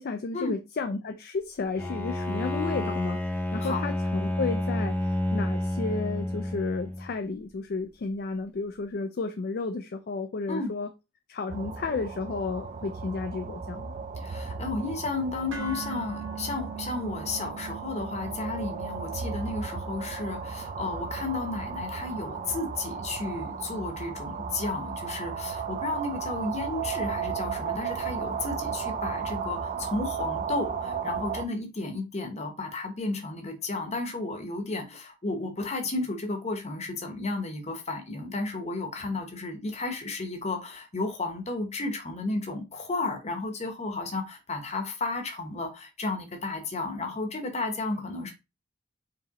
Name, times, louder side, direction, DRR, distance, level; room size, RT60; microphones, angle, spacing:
voice 1, 0.0-10.9 11.3-13.9, left 4 dB, 50° left, 0.4 m, -32 dB
Bowed string instrument, 1.8-7.1, left 1 dB, 10° left, 0.7 m, -30 dB
sound 1, 11.5-31.4, right 6 dB, 35° right, 0.3 m, -35 dB
voice 2, 14.2-48.3, left 3 dB, 35° left, 0.9 m, -33 dB
sound 2, 15.5-23.6, right 7 dB, 70° right, 1.3 m, -44 dB
4.7 x 3.1 x 2.9 m
head